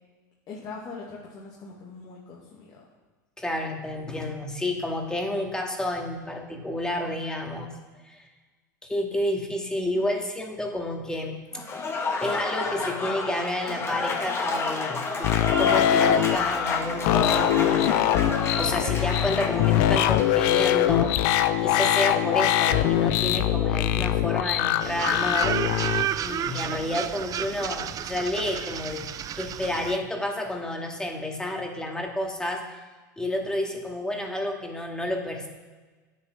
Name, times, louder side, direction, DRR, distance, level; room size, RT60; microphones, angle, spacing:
voice 1, 0.5-2.8 10.2-10.4 26.7-26.9, left 4 dB, 40° left, -4 dB, 2.5 m, -42 dB
voice 2, 3.4-7.7 8.0-8.2 8.8-11.4 12.2-15.3 15.6-18.2 18.6-25.6 26.2-29.1 29.4-32.8 33.2-35.5, left 1 dB, 5° left, 1 dB, 2.1 m, -30 dB
Applause / Crowd, 11.5-20.4, left 3 dB, 25° left, 2.1 m, -30 dB
sound 1, 15.2-26.0, left 11 dB, 60° left, 0.7 m, -23 dB
sound 2, 24.8-30.0, right 10 dB, 35° right, 0.5 m, -31 dB
10.0 x 8.8 x 6.1 m, 1.3 s
hypercardioid pair, 95°, 11 cm